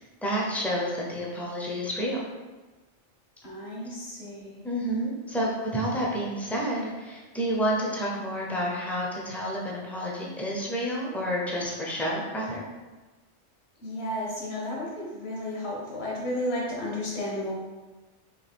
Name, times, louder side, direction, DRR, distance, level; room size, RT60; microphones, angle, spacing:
voice 1, 0.2-2.2 4.6-12.6, equal, ahead, -4 dB, 0.5 m, -29 dB
voice 2, 3.4-4.6 13.8-17.5, left 1 dB, 60° left, -4 dB, 1.3 m, -33 dB
3.2 x 3.2 x 4.3 m, 1.2 s
omnidirectional pair, 1.2 m